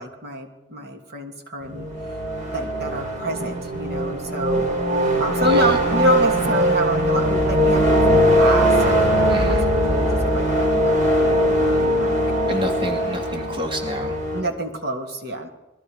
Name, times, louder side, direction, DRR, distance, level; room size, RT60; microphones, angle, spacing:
voice 1, 0.0-1.9 2.5-4.7 5.2-12.2 14.3-15.5, equal, 60° right, 3 dB, 3.0 m, -29 dB
sound 1, 1.6-14.4, equal, 45° right, 4.5 m, -20 dB
voice 2, 5.4-5.8 9.3-9.7 12.5-14.2, equal, 30° right, 2 dB, 2.5 m, -28 dB
28.5 x 20.5 x 5.1 m, 1.1 s
head